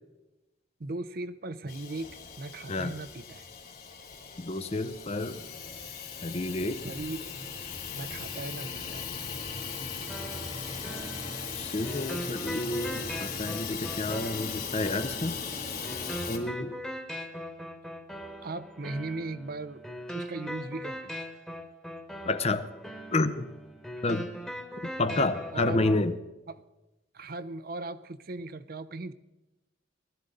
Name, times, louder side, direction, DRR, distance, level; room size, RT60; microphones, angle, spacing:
voice 1, 0.8-3.5 6.8-7.3 7.9-9.1 18.4-21.2 24.1-24.2 25.5-25.8 26.5-26.6 27.1-29.1, right 2 dB, 50° right, 13 dB, 0.6 m, -38 dB
Hiss / Toilet flush / Trickle dribble, 1.7-16.4, left 5 dB, 50° left, 3.0 m, -38 dB
voice 2, 4.4-5.4 6.2-6.8 11.6-15.4 16.3-16.8 22.2-22.7 23.1-23.5 24.0-24.3 24.8-26.2, left 2 dB, 35° left, 12 dB, 0.7 m, -30 dB
sound 1, 10.1-26.1, equal, 5° left, 1.3 m, -41 dB
20.0 x 12.5 x 3.9 m, 1.0 s
head